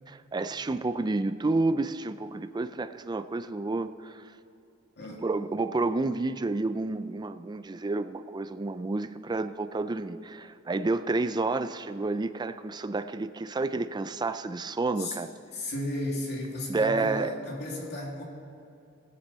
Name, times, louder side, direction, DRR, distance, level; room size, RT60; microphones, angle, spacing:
voice 1, 0.1-4.2 5.2-15.3 16.7-17.3, right 3 dB, 20° right, 12 dB, 0.4 m, -30 dB
voice 2, 15.5-18.2, left 1 dB, 55° left, -1 dB, 2.4 m, -34 dB
18.0 x 9.4 x 4.2 m, 2.6 s
head